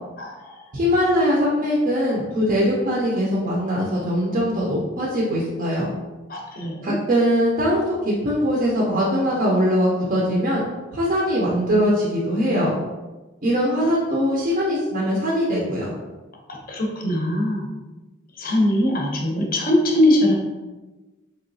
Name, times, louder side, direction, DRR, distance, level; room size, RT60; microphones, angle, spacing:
voice 1, 0.2-0.7 6.3-6.9 16.7-17.7 18.4-20.3, left 1 dB, 45° left, 0 dB, 0.6 m, -21 dB
voice 2, 0.7-5.9 6.8-10.6 10.9-12.8 13.4-15.9, equal, 40° right, -4 dB, 0.4 m, -21 dB
3.2 x 2.8 x 2.6 m, 1.2 s
head